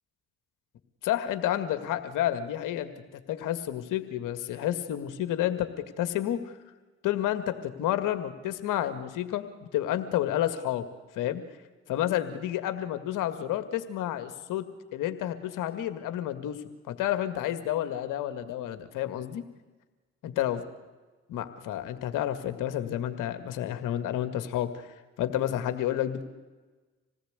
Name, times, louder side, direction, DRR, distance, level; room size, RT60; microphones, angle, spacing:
voice 1, 1.0-2.9 3.3-6.5 7.0-10.9 11.2-11.4 11.9-14.7 14.9-19.4 20.2-20.6 21.3-24.9 25.2-26.2, left 12 dB, 70° left, 9 dB, 2.0 m, -30 dB
27.0 x 18.5 x 8.2 m, 1.2 s
hypercardioid pair, 40°, 33 cm